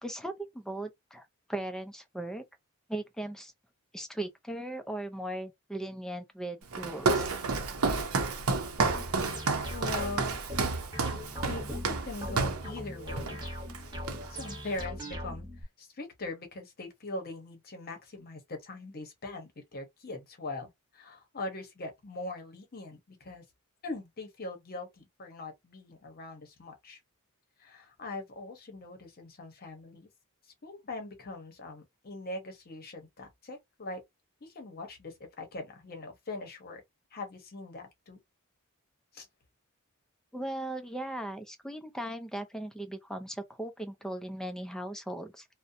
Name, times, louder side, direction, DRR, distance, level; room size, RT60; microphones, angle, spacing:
voice 1, 0.0-2.4 2.9-3.5 3.9-7.4 40.3-45.5, right 1 dB, 5° left, 0.4 m, -38 dB
Walk footsteps, 6.7-12.7 13.2-13.4 13.7-14.5, right 4 dB, 75° right, 0.6 m, -30 dB
sound 1, 8.8-15.6, equal, 20° right, 0.9 m, -40 dB
voice 2, 9.7-10.4 11.1-13.4 14.3-23.4 23.8-27.0 27.6-30.1 30.4-34.0 34.4-36.8 37.1-38.2 39.1-39.3, left 2 dB, 45° left, 0.8 m, -41 dB
2.5 x 2.1 x 2.6 m
head